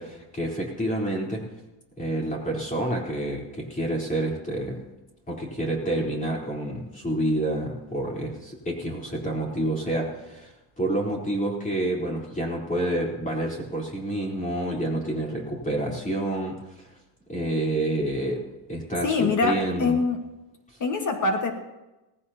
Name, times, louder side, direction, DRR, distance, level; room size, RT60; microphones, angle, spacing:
voice 1, 0.0-1.5 2.0-4.8 5.3-16.9 17.3-18.4 18.7-20.0, right 1 dB, 15° left, -2 dB, 3.8 m, -28 dB
voice 2, 19.0-20.2 20.8-21.5, left 4 dB, 40° left, 4 dB, 1.6 m, -24 dB
18.5 x 15.5 x 2.9 m, 1.0 s
cardioid pair, 135°, 45 cm